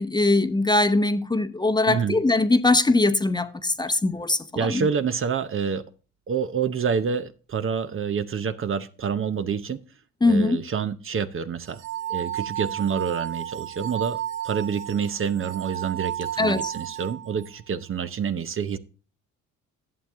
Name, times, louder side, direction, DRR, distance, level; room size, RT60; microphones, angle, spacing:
voice 1, 0.0-4.9 10.2-10.6 16.4-16.6, left 2 dB, 15° left, 0.9 m, -21 dB
voice 2, 1.9-2.2 3.9-4.0 4.6-5.8 6.3-9.8 10.2-11.8 12.1-14.2 14.4-18.8, right 6 dB, 45° right, 0.8 m, -27 dB
sound 1, 11.6-17.5, right 12 dB, 80° right, 1.1 m, -33 dB
11.0 x 7.3 x 3.6 m
cardioid pair, 90°, 30 cm